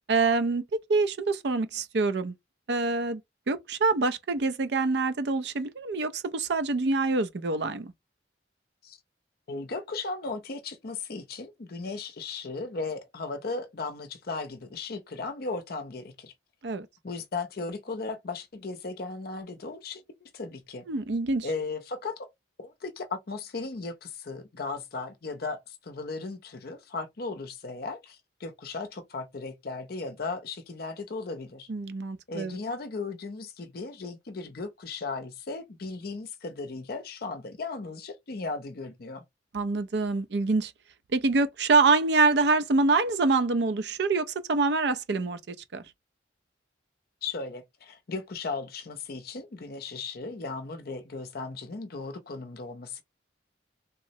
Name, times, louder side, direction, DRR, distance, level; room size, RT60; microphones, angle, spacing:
voice 1, 0.1-0.6 0.9-2.3 2.7-3.2 3.5-7.9 16.6-16.9 20.9-21.5 31.7-32.6 39.5-40.7 41.1-45.8, right 3 dB, 60° right, 0.5 m, -25 dB
voice 2, 9.5-16.3 17.0-20.8 21.4-22.3 22.6-31.7 32.3-39.2 47.2-53.0, left 3 dB, 55° left, 0.6 m, -36 dB
3.7 x 2.0 x 2.6 m
head